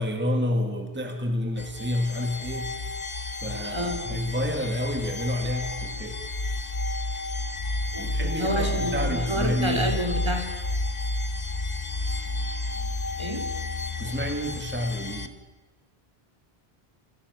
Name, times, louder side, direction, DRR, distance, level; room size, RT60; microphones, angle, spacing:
voice 1, 0.0-2.7 3.4-6.2 8.0-10.0 14.0-15.3, left 1 dB, 10° right, 4 dB, 1.8 m, -29 dB
sound 1, 1.6-15.3, left 2 dB, 45° left, 1.1 m, -31 dB
voice 2, 3.5-4.2 7.9-10.5 13.2-13.4, right 1 dB, 25° right, 3 dB, 3.0 m, -29 dB
27.5 x 11.5 x 8.2 m, 1.2 s
omnidirectional pair, 1.0 m